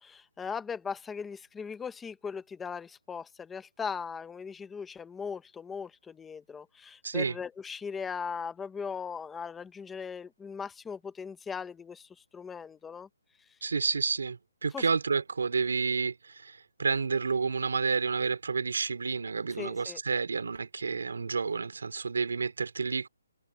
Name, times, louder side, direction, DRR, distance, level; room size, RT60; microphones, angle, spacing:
voice 1, 0.0-13.1 14.7-14.9 19.6-20.0, left 6 dB, 5° left, 0.7 m, -39 dB
voice 2, 7.0-7.3 13.6-23.1, right 5 dB, 70° right, 2.7 m, -30 dB
hypercardioid pair, 180°, 0 cm